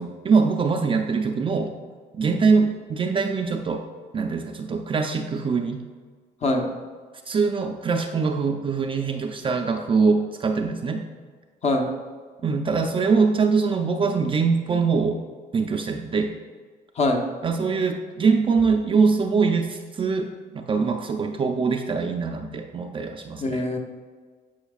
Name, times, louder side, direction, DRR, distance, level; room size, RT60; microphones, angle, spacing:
voice 1, 0.0-1.7 2.1-3.9 4.1-5.8 7.3-11.1 12.4-15.2 15.5-16.3 17.4-23.6, right 4 dB, 30° right, 3 dB, 0.5 m, -23 dB
voice 2, 11.6-11.9 17.0-17.3 23.4-23.8, left 2 dB, 40° left, 3 dB, 1.0 m, -23 dB
10.0 x 4.9 x 2.4 m, 1.5 s
cardioid pair, 110°, 17 cm